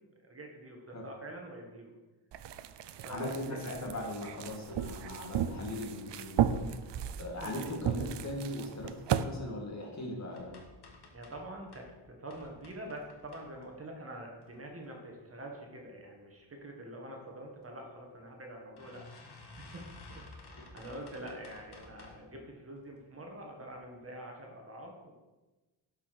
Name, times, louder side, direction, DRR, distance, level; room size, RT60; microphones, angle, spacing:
voice 1, 0.2-1.9 3.0-3.6 7.4-7.5 11.1-25.1, right 1 dB, 30° right, 1 dB, 1.8 m, -46 dB
sound 1, 2.3-9.2, right 9 dB, 65° right, 0.7 m, -35 dB
voice 2, 3.1-6.6 7.2-10.6, left 1 dB, 35° left, 0 dB, 2.4 m, -39 dB
sound 2, 10.3-11.9 12.3-13.9 14.4-15.0 15.4-15.8 16.1-16.2 16.5-16.6 17.6-17.7 18.1-18.2 18.8-22.3 22.8-23.2 23.7-23.8 24.1-24.2, left 2 dB, 55° left, 1.9 m, -53 dB
12.0 x 5.7 x 6.1 m, 1.2 s
wide cardioid pair, 130°, 46 cm